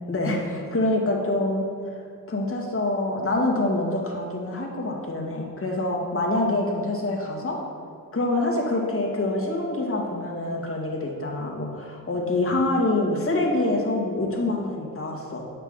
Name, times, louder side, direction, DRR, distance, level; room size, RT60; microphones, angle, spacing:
voice 1, 0.1-1.6 1.9-2.0 2.3-7.6 8.1-15.5, left 2 dB, 30° left, -1 dB, 1.9 m, -26 dB
8.1 x 5.8 x 3.8 m, 2.3 s
hypercardioid pair, 45°, 45 cm